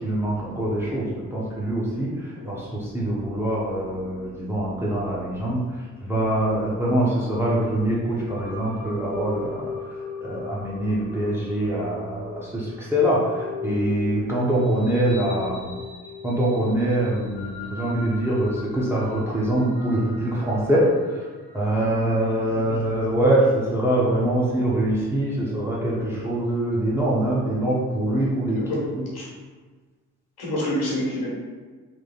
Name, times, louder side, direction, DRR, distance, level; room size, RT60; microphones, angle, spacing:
voice 1, 0.0-5.6 6.0-9.7 10.2-15.7 16.2-20.9 21.5-28.6, right 1 dB, 5° right, -6 dB, 0.9 m, -24 dB
sound 1, 8.3-27.8, left 4 dB, 80° left, 0.9 m, -39 dB
voice 2, 30.4-31.3, left 1 dB, 50° left, -6 dB, 1.4 m, -29 dB
3.9 x 3.1 x 2.4 m, 1.4 s
figure-of-eight pair, 40°, 46 cm